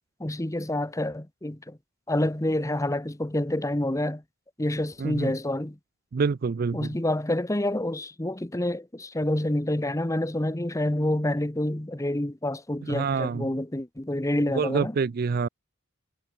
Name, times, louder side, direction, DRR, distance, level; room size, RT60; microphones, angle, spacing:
voice 1, 0.2-1.8 2.1-4.2 4.6-5.8 6.7-14.9, left 1 dB, 15° left, 1.0 m, -28 dB
voice 2, 5.0-5.3 6.1-6.9 12.8-13.5 14.5-15.5, right 5 dB, 45° right, 0.4 m, -27 dB
head